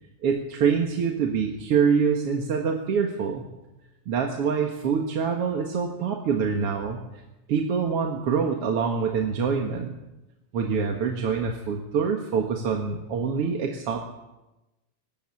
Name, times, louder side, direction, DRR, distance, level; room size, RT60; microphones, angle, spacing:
voice 1, 0.2-3.4 4.1-7.0 7.5-9.9 10.5-14.1, right 6 dB, 55° right, 2 dB, 2.4 m, -25 dB
23.5 x 13.5 x 8.6 m, 1.0 s
omnidirectional pair, 3.3 m